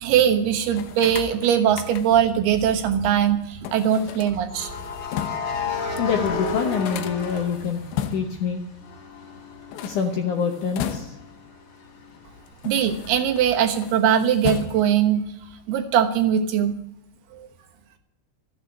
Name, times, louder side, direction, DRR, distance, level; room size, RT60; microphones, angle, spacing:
voice 1, 0.0-4.7 12.6-15.2 15.7-16.7, right 9 dB, 75° right, 5 dB, 3.2 m, -21 dB
sound 1, 0.7-2.4 3.6-5.6 6.0-6.1 6.3-8.5 9.6-11.4 12.2-13.4 13.8-15.1, left 9 dB, 85° left, 3.1 m, -35 dB
sound 2, 1.3-1.4 4.5-8.4 8.8-12.3, left 4 dB, 40° left, 4.0 m, -32 dB
voice 2, 6.0-7.8 8.1-8.6 9.7-11.2, left 6 dB, 70° left, 4 dB, 2.0 m, -25 dB
13.5 x 8.0 x 9.7 m, 0.82 s
omnidirectional pair, 4.8 m